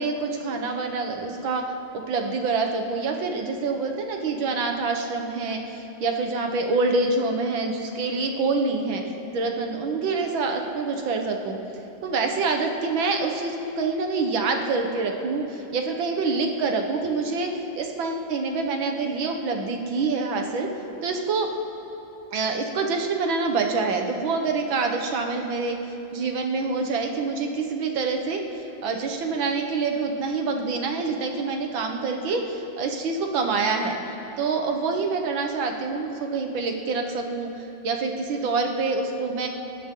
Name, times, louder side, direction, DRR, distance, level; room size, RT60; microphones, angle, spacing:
voice 1, 0.0-1.7 1.9-9.0 9.3-11.6 12.0-17.5 17.8-20.7 21.0-21.5 22.3-25.8 26.1-33.9 34.4-39.5, right 4 dB, 90° right, 3 dB, 2.1 m, -26 dB
20.0 x 17.5 x 3.9 m, 3.0 s
omnidirectional pair, 2.1 m